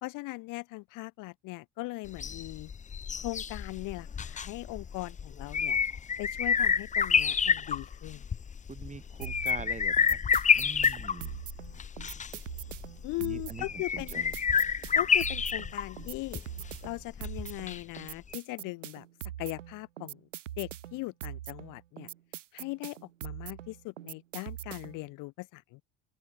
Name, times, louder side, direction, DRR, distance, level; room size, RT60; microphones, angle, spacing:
voice 1, 0.0-2.7 3.2-5.8 6.2-8.2 13.0-14.2 14.9-16.4 16.8-19.1 19.4-20.2 20.6-22.1 22.5-25.8, left 22 dB, 60° left, 0.9 m, -39 dB
sound 1, 2.1-18.0 18.3-18.4, left 6 dB, 20° left, 0.6 m, -29 dB
voice 2, 8.7-10.2 10.5-11.4 13.2-14.3, right 4 dB, 20° right, 1.5 m, -44 dB
sound 2, 9.2-25.1, right 12 dB, 85° right, 2.8 m, -43 dB
open air
hypercardioid pair, 70°, 37 cm